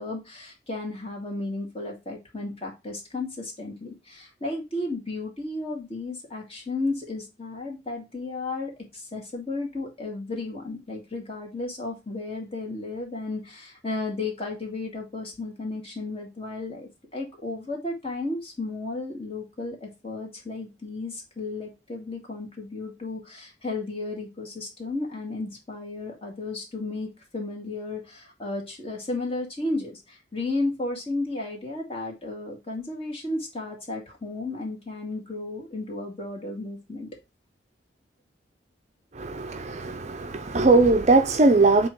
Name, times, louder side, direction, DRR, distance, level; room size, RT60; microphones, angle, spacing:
voice 1, 0.0-37.1, left 2 dB, 30° left, 2.1 m, -33 dB
voice 2, 39.2-41.9, right 3 dB, 40° right, 0.6 m, -20 dB
7.4 x 3.0 x 4.5 m
head